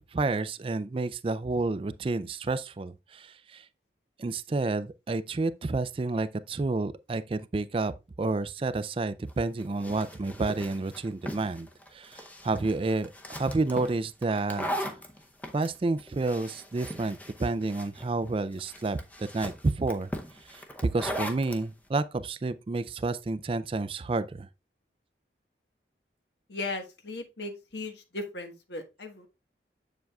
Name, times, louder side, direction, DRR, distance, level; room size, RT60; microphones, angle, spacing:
voice 1, 0.0-3.7 4.2-15.0 15.5-20.1 20.4-20.6 20.9-24.5, right 3 dB, 30° right, 0.3 m, -30 dB
sound 1, 9.3-21.6, equal, 10° left, 0.6 m, -39 dB
voice 2, 26.5-29.3, left 2 dB, 75° left, 1.3 m, -37 dB
7.6 x 7.1 x 2.3 m
head